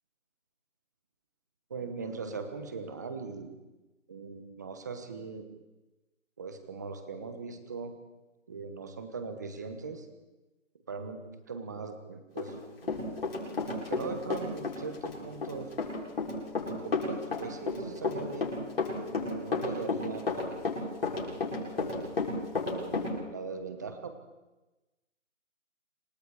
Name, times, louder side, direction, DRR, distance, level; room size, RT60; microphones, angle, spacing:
voice 1, 1.7-3.6 4.1-5.4 6.4-7.9 8.5-10.1 10.9-11.2 11.5-12.6 12.8-12.9 13.6-15.7 16.6-18.5 19.1-20.6 21.4-22.2 22.5-24.1, right 4 dB, 15° right, 8 dB, 1.1 m, -40 dB
Run, 12.4-14.0 14.3-23.1, left 4 dB, 50° left, 7.5 m, -31 dB
27.5 x 24.5 x 4.9 m, 1.1 s
figure-of-eight pair, 170°, 38 cm